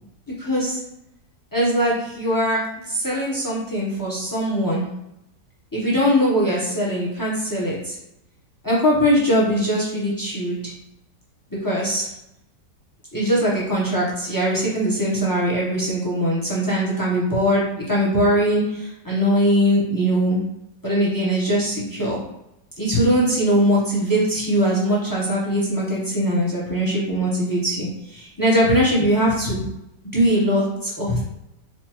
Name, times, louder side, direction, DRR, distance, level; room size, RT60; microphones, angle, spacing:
voice 1, 0.4-0.8 1.5-4.9 5.7-7.9 8.6-10.6 11.6-12.1 13.1-20.4 20.8-22.2 22.8-29.6 30.1-31.3, equal, 20° left, -5 dB, 0.5 m, -21 dB
4.6 x 2.5 x 2.9 m, 0.86 s
omnidirectional pair, 1.9 m